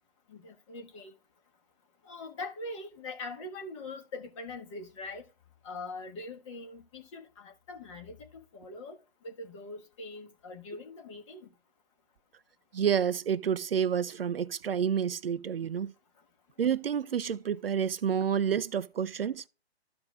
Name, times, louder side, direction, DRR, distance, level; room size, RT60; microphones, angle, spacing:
voice 1, 0.3-1.1 2.0-5.3 5.6-9.0 9.2-11.5, left 2 dB, 30° left, 1.5 m, -42 dB
voice 2, 12.7-15.9 16.6-19.4, right 8 dB, 65° right, 0.5 m, -29 dB
14.0 x 4.8 x 2.4 m
figure-of-eight pair, 140°, 32 cm